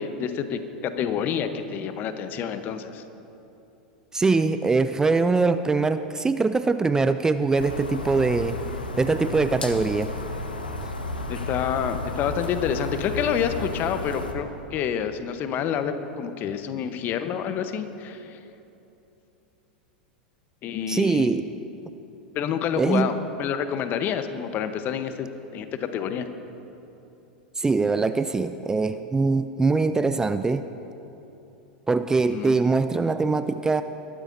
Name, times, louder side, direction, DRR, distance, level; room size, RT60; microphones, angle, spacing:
voice 1, 0.0-3.0 11.3-18.4 20.6-21.3 22.3-26.3 32.3-32.6, left 8 dB, 40° left, 9 dB, 0.9 m, -28 dB
voice 2, 4.1-8.6 9.0-10.1 20.9-21.4 22.8-23.1 27.6-30.6 31.9-33.8, right 3 dB, 15° right, 11 dB, 0.4 m, -22 dB
sound 1, 7.6-14.3, left 2 dB, 90° left, 1.1 m, -33 dB
21.5 x 12.5 x 2.7 m, 2.9 s
hypercardioid pair, 90°, 5 cm